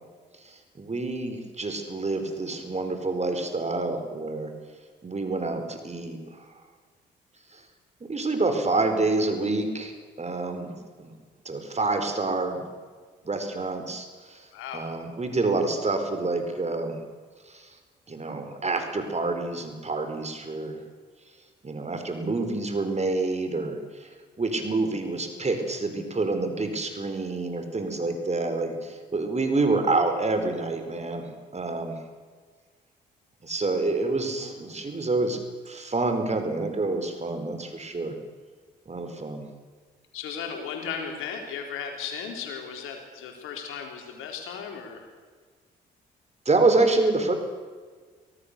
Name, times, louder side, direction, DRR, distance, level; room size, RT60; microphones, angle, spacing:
voice 1, 0.8-4.5 5.0-6.2 8.0-9.9 10.2-11.1 11.4-12.6 13.2-14.4 14.7-17.0 17.5-17.6 18.1-20.8 21.6-23.8 24.4-32.0 33.4-35.4 35.7-38.1 38.9-39.5 46.5-47.3, right 3 dB, 30° right, 7 dB, 4.5 m, -27 dB
voice 2, 14.5-14.8 40.1-45.1, left 6 dB, 75° left, 3 dB, 4.1 m, -36 dB
24.5 x 18.5 x 6.9 m, 1.5 s
hypercardioid pair, 50°, 21 cm